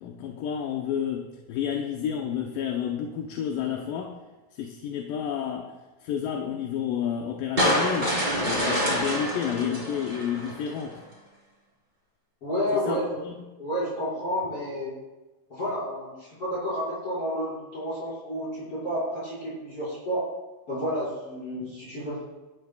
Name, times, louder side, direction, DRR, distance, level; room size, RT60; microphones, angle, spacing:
voice 1, 0.0-4.2 4.5-5.7 6.0-11.0 12.7-13.0 13.2-13.3, left 8 dB, 75° left, 2 dB, 2.3 m, -30 dB
sound 1, 7.6-10.8, equal, 10° right, 3.2 m, -26 dB
voice 2, 12.4-13.2 13.6-15.0 15.5-20.2 20.7-22.2, equal, 35° left, -9 dB, 6.5 m, -30 dB
23.5 x 12.0 x 2.4 m, 1.1 s
omnidirectional pair, 4.5 m